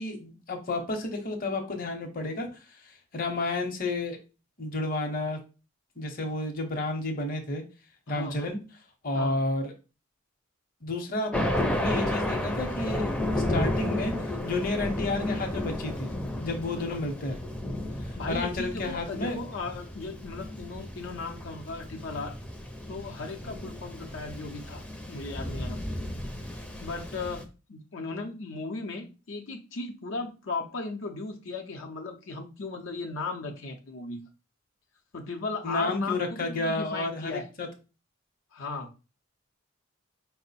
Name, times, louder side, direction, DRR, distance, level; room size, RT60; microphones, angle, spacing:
voice 1, 0.0-2.5 3.1-4.2 4.6-5.4 6.0-7.6 8.1-8.6 9.0-9.7 10.8-11.3 11.6-14.1 14.4-16.1 16.4-17.4 18.3-19.4 35.6-37.7, left 2 dB, 45° left, 0.8 m, -31 dB
voice 2, 8.1-8.5 9.1-9.4 16.9-17.0 18.2-22.4 22.9-25.8 26.8-27.4 27.7-34.2 35.1-37.5 38.5-38.9, left 3 dB, 85° left, 0.7 m, -36 dB
Thunder, 11.3-27.4, left 1 dB, 5° left, 0.4 m, -33 dB
4.5 x 2.1 x 4.1 m
head